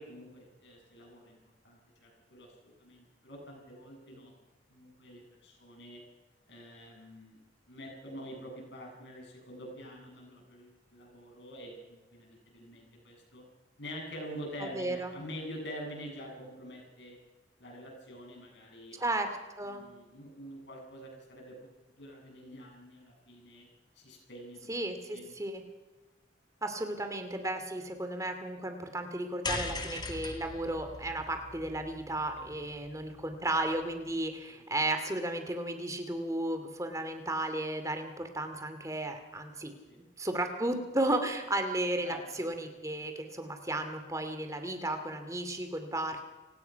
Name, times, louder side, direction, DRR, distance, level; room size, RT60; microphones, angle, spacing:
voice 1, 0.0-1.4 1.6-4.3 4.7-6.0 6.5-7.4 7.7-13.4 13.8-17.2 17.6-19.0 19.6-21.6 22.0-23.7 24.0-24.7 25.1-25.3 32.4-32.6 39.9-40.0 42.0-42.5, equal, 70° left, 1 dB, 7.7 m, -46 dB
voice 2, 14.6-15.1 19.0-19.3 19.6-19.8 24.7-25.6 26.6-39.7 40.2-46.2, right 1 dB, 15° right, 7 dB, 2.5 m, -34 dB
sound 1, 29.4-33.8, left 3 dB, 25° left, 2.3 m, -40 dB
29.5 x 18.5 x 5.8 m, 1.2 s
head